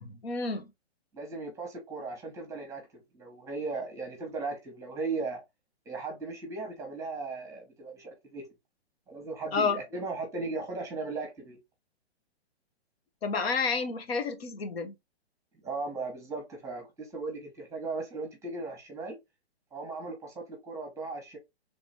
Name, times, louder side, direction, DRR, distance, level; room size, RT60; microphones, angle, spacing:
voice 1, 0.0-0.7 9.5-9.8 13.2-14.9, left 5 dB, 65° left, 1.0 m, -30 dB
voice 2, 1.1-2.8 3.1-5.4 5.8-8.5 9.1-11.6 15.6-19.1 19.7-21.4, right 3 dB, 10° right, 1.1 m, -37 dB
3.4 x 2.9 x 4.2 m
hypercardioid pair, 145°, 33 cm